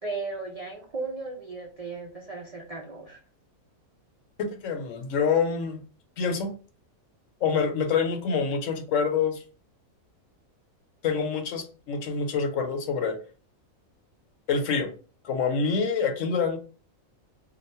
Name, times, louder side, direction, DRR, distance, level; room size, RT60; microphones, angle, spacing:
voice 1, 0.0-3.2, right 3 dB, 65° right, 0 dB, 0.3 m, -36 dB
voice 2, 4.4-5.8 6.2-6.5 7.4-9.4 11.0-13.2 14.5-14.9 15.2-16.6, left 5 dB, 70° left, 6 dB, 0.9 m, -26 dB
2.9 x 2.1 x 4.1 m, 0.37 s
omnidirectional pair, 1.5 m